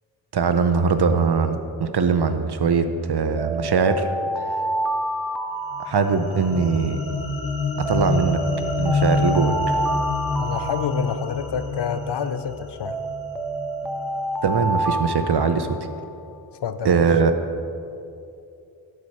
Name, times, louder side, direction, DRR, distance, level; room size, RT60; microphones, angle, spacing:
voice 1, 0.3-4.1 5.8-7.0 7.8-8.4 8.8-9.8 14.4-15.8 16.8-17.3, right 5 dB, 55° right, 8 dB, 0.8 m, -21 dB
Alarm, 3.4-6.7 7.8-11.7 12.8-16.1, right 1 dB, ahead, 0.5 m, -28 dB
sound 1, 5.7-14.2, left 3 dB, 80° left, 1.2 m, -27 dB
voice 2, 10.4-13.0 16.6-17.0, left 7 dB, 60° left, 11 dB, 0.6 m, -28 dB
11.0 x 5.0 x 5.5 m, 2.6 s
cardioid pair, 45°, 47 cm